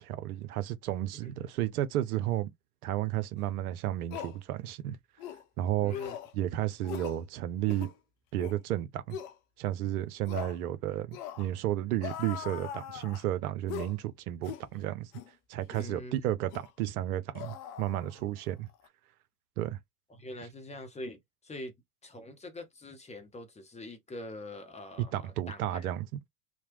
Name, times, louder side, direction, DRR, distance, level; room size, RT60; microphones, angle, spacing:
voice 1, 0.0-2.5 2.8-5.0 5.6-6.1 6.3-7.9 8.3-9.2 9.6-15.1 15.5-18.7 19.6-19.8 25.1-26.1, right 13 dB, 70° right, 0.7 m, -32 dB
sound 1, 3.4-3.5 4.1-4.4 5.2-5.4 5.9-6.3 6.8-7.2 7.6-7.9 8.4-8.6 9.1-9.3 10.3-10.6 11.1-11.5 12.0-13.3 13.7-14.0 14.4-14.7 15.1-15.3 15.7-15.9 16.5-16.7 17.3-18.4 18.7-18.9, left 10 dB, 50° left, 0.7 m, -41 dB
voice 2, 5.8-6.2 15.7-16.3 20.1-21.8 22.0-25.9, left 1 dB, 15° left, 0.8 m, -44 dB
3.0 x 2.1 x 2.9 m
hypercardioid pair, 80°, 47 cm